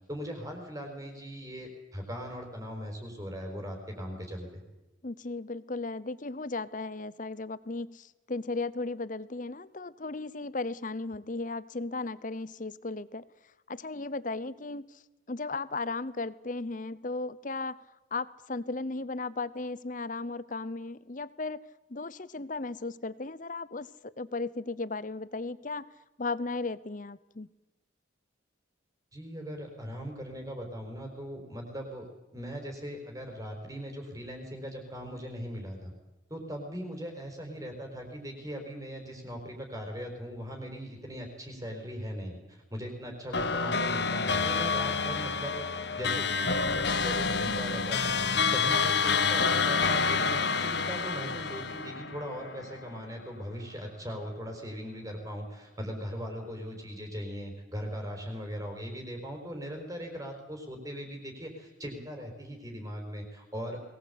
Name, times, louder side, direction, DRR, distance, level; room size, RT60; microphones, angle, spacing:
voice 1, 0.1-4.6 29.1-35.9 36.3-63.8, equal, 15° right, 2 dB, 4.5 m, -39 dB
voice 2, 5.0-13.3 13.7-14.9 15.3-17.8 18.1-21.6 21.9-25.9 26.2-27.5, left 3 dB, 40° left, 18 dB, 0.8 m, -36 dB
sound 1, 43.3-53.0, left 5 dB, 60° left, 1.1 m, -28 dB
22.0 x 20.0 x 8.3 m, 1.1 s
head